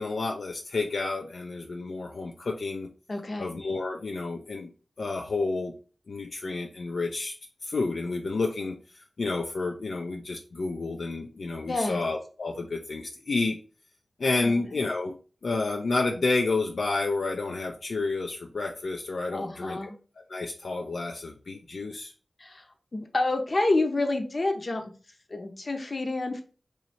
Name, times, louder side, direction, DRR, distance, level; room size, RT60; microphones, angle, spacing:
voice 1, 0.0-2.9 3.4-4.7 5.0-5.7 6.1-7.3 7.6-8.7 9.2-13.6 14.2-15.1 15.4-19.9 20.3-22.1, left 3 dB, 85° left, 2 dB, 0.4 m, -30 dB
voice 2, 3.1-3.5 11.7-12.0 14.3-14.6 19.3-20.0 22.4-22.6 22.9-24.9 25.3-26.4, left 2 dB, 50° left, 4 dB, 0.7 m, -28 dB
3.1 x 2.7 x 4.1 m, 0.38 s
wide cardioid pair, 65°, 0 cm